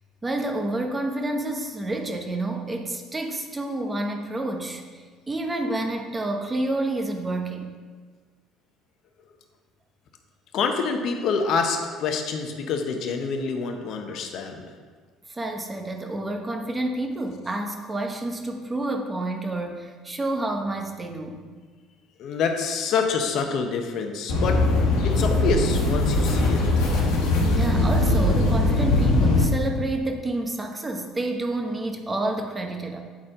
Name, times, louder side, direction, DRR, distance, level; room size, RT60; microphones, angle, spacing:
voice 1, 0.2-7.8 15.3-21.4 27.5-33.0, right 2 dB, 20° right, 3 dB, 1.0 m, -29 dB
voice 2, 10.5-14.7 22.2-24.6 25.0-26.6, left 5 dB, 60° left, 4 dB, 0.8 m, -26 dB
sound 1, 24.3-29.4, left 2 dB, 80° left, 1.2 m, -21 dB
8.4 x 4.3 x 3.7 m, 1.5 s
supercardioid pair, 75°, 0 cm